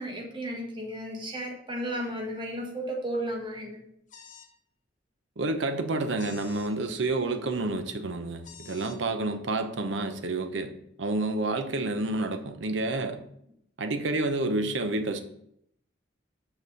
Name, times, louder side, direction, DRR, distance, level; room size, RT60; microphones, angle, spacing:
voice 1, 0.0-3.8, right 1 dB, 25° right, 0 dB, 1.5 m, -34 dB
sound 1, 4.1-4.5 6.2-6.7 8.4-9.0, left 7 dB, 40° left, 0.8 m, -48 dB
voice 2, 5.4-10.7 11.0-13.2 13.8-15.2, right 2 dB, 70° right, 7 dB, 0.7 m, -29 dB
6.1 x 5.7 x 3.9 m, 0.73 s
head